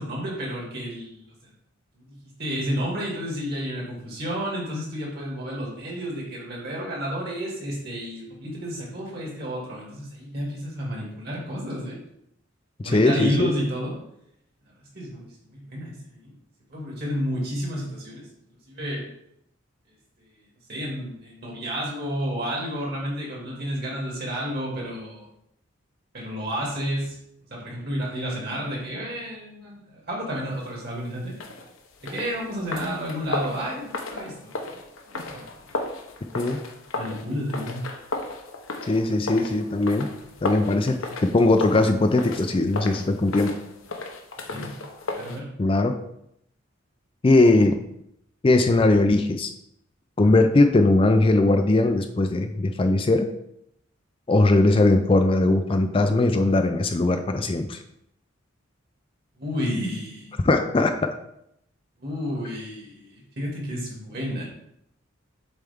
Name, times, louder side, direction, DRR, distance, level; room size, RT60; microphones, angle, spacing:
voice 1, 0.0-1.5 2.0-12.0 12.8-13.9 14.9-16.3 16.7-18.3 18.7-19.1 20.3-20.4 20.7-25.2 26.1-27.2 27.5-31.4 32.0-34.8 35.1-35.8 36.2-36.4 37.0-37.9 44.5-45.5 59.4-60.3 62.0-64.4, equal, 50° right, -3 dB, 2.3 m, -31 dB
voice 2, 12.8-13.5 36.3-36.6 38.9-40.1 40.4-43.5 45.6-46.0 47.2-47.7 48.4-49.5 50.2-53.3 54.3-57.8 60.4-61.1, left 2 dB, 25° left, 6 dB, 0.4 m, -20 dB
sound 1, 31.3-45.4, left 2 dB, 80° left, 0.9 m, -35 dB
7.1 x 4.4 x 3.5 m, 0.77 s
head